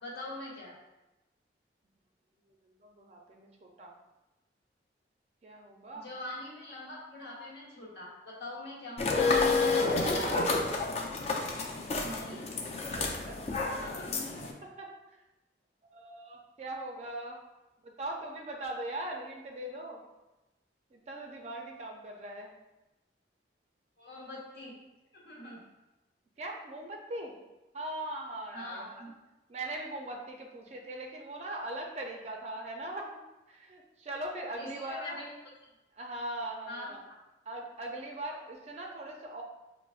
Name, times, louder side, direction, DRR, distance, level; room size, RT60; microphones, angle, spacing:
voice 1, 0.0-0.7 6.0-9.1 12.0-12.5 13.7-14.2 24.0-24.8 25.1-25.6 28.5-29.1 34.6-35.3 36.7-36.9, left 2 dB, 65° left, -6 dB, 1.2 m, -43 dB
voice 2, 2.5-4.0 5.4-6.1 9.9-10.4 13.0-13.5 14.3-15.2 15.9-17.4 17.8-20.0 20.9-22.5 26.4-27.4 27.7-28.9 29.5-33.1 33.5-35.2 35.9-37.0 37.5-39.4, right 1 dB, 35° right, 1 dB, 0.4 m, -40 dB
sound 1, 9.0-14.5, left 3 dB, 35° left, 0.4 m, -29 dB
5.9 x 2.0 x 2.4 m, 1.0 s
head